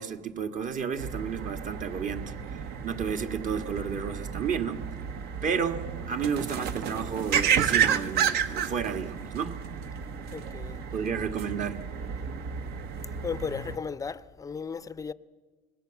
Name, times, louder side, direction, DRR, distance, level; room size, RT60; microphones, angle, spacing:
voice 1, 0.0-4.9 5.4-13.1, right 7 dB, 45° right, 1.8 m, -33 dB
sound 1, 1.0-13.8, right 7 dB, 60° right, 1.4 m, -31 dB
voice 2, 10.3-10.8 13.2-15.1, left 6 dB, 20° left, 0.6 m, -35 dB
25.0 x 20.0 x 7.1 m
cardioid pair, 125°, 19 cm